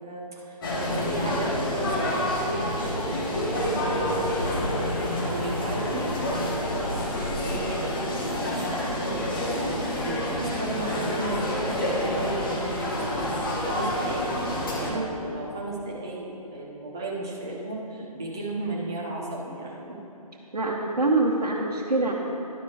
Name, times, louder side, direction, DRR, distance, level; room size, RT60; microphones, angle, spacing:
voice 1, 0.0-4.6 5.2-9.2 9.6-20.0, right 2 dB, 5° right, -3 dB, 0.3 m, -35 dB
sound 1, 0.6-14.9, left 1 dB, 35° left, 1.5 m, -28 dB
voice 2, 20.5-22.1, right 2 dB, 70° right, -4 dB, 1.2 m, -25 dB
12.5 x 11.0 x 3.3 m, 2.9 s
figure-of-eight pair, 145°, 20 cm